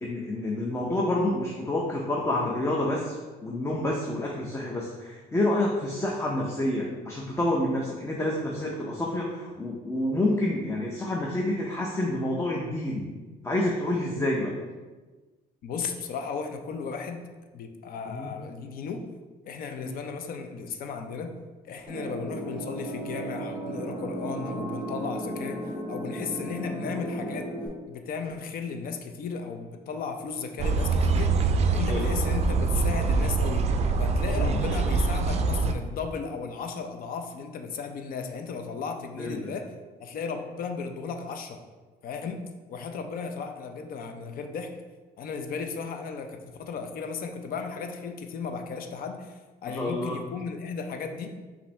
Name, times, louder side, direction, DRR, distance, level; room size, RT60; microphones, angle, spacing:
voice 1, 0.0-3.2 3.4-13.1 13.4-14.5 18.0-18.3 19.8-19.9 31.9-32.1 34.4-34.6 39.2-39.5 49.7-50.2, left 1 dB, 15° left, -2 dB, 0.6 m, -28 dB
voice 2, 15.6-17.2 17.5-19.0 19.4-21.3 21.6-25.6 25.9-27.5 27.9-33.6 34.0-39.7 40.0-41.6 42.0-42.4 42.7-44.7 45.2-51.3, left 5 dB, 60° left, 6 dB, 0.5 m, -35 dB
sound 1, 21.9-27.7, right 1 dB, 10° right, 1.4 m, -35 dB
sound 2, 30.6-35.7, right 4 dB, 40° right, 0.4 m, -24 dB
5.5 x 2.6 x 3.2 m, 1.3 s
cardioid pair, 110°, 17 cm